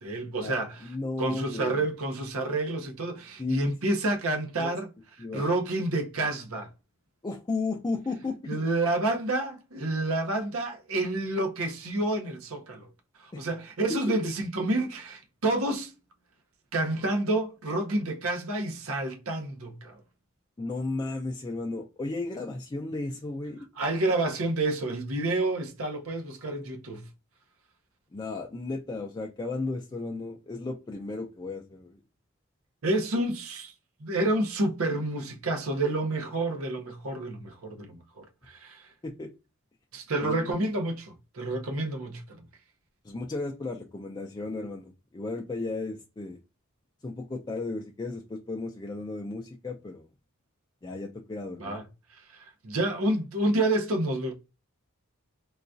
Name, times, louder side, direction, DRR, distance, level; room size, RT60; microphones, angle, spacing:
voice 1, 0.0-0.9 1.2-4.9 5.3-6.7 8.5-12.9 13.2-15.9 16.7-20.0 23.8-27.0 32.8-33.7 34.0-38.9 39.9-42.4 51.6-51.8 52.3-54.3, right 2 dB, 80° right, 0.8 m, -29 dB
voice 2, 0.8-1.9 3.4-3.6 4.6-4.7 5.2-5.5 7.2-8.7 13.3-13.4 20.6-23.7 28.1-32.0 39.0-39.3 40.2-40.5 43.0-46.4 47.0-50.1 50.8-51.8, left 3 dB, 20° left, 0.3 m, -34 dB
3.8 x 2.3 x 2.5 m
head